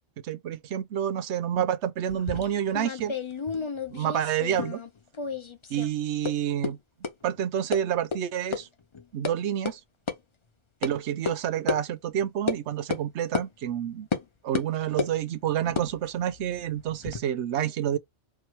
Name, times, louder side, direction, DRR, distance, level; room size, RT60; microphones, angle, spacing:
voice 1, 0.2-3.2 3.9-4.8 5.7-6.8 7.2-8.7 9.1-9.8 10.8-14.1 14.4-18.0, right 10 dB, 75° right, 0.9 m, -28 dB
sound 1, 2.1-4.9 5.1-5.9 6.2-6.3 6.6-6.7 7.0-7.1 7.7-7.8 8.1-8.2 8.5-8.6 8.9-9.3 9.7-9.8 10.1-10.2 10.8-10.9 11.3-11.4 11.7-11.8 12.5-12.6 12.9-13.0 13.3-13.5 14.1-14.2 14.5-15.2 15.7-17.2, left 5 dB, 30° left, 0.6 m, -31 dB
4.5 x 2.3 x 4.5 m
omnidirectional pair, 1.2 m